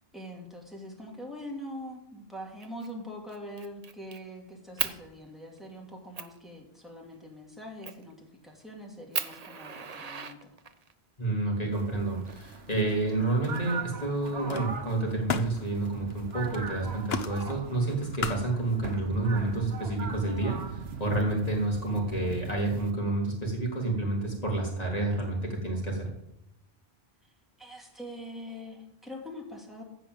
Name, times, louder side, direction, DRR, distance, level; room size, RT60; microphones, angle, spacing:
voice 1, 0.1-10.5 27.6-29.8, equal, ahead, -2 dB, 2.9 m, -43 dB
Fire, 2.6-2.9 3.3-4.2 4.8-5.0 5.6-5.7 6.2-6.4 7.8-8.1 8.6-8.7 9.1-10.9 12.0-12.9, right 6 dB, 40° right, 0.8 m, -36 dB
voice 2, 11.2-26.1, right 2 dB, 35° left, -1 dB, 3.5 m, -29 dB
sound 1, 11.7-22.9, right 5 dB, 70° right, 1.5 m, -41 dB
Camera, 12.5-13.1 13.4-19.0, left 6 dB, 70° left, 1.2 m, -39 dB
15.0 x 5.5 x 7.9 m, 0.83 s
omnidirectional pair, 1.1 m